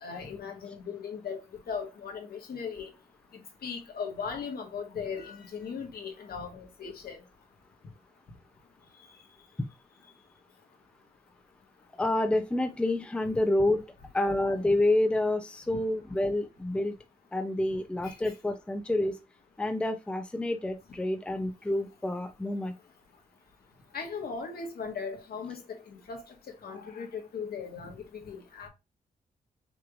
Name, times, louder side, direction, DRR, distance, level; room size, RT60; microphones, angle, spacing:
voice 1, 0.0-1.4 1.7-2.9 3.6-7.2 18.0-18.2 23.9-25.6 25.9-28.7, left 6 dB, 75° left, 1.6 m, -38 dB
voice 2, 12.0-13.8 14.1-17.0 17.3-19.2 19.6-22.7, left 1 dB, 5° left, 0.5 m, -28 dB
5.9 x 3.2 x 2.4 m
wide cardioid pair, 175°, 16 cm